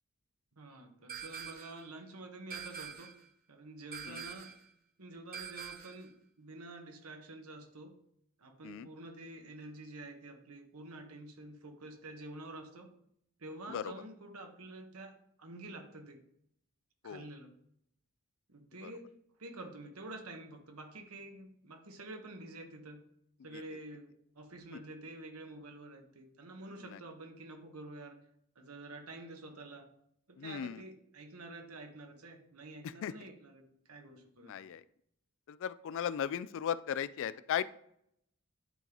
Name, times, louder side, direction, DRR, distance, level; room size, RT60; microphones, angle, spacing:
voice 1, 0.6-3.1 3.5-4.5 5.0-6.1 6.4-7.9 8.4-12.9 13.4-16.2 17.0-17.6 18.5-19.1 19.4-23.0 23.4-28.2 28.5-29.9 30.3-34.5, right 2 dB, 85° right, 4 dB, 1.2 m, -48 dB
sound 1, 1.1-1.8 2.5-3.2 3.9-4.6 5.3-6.1, right 7 dB, 40° right, 0.8 m, -45 dB
voice 2, 30.4-30.8 32.8-33.1 34.4-34.8 35.5-37.6, left 9 dB, 60° left, 17 dB, 0.3 m, -37 dB
10.5 x 3.9 x 3.0 m, 0.71 s
head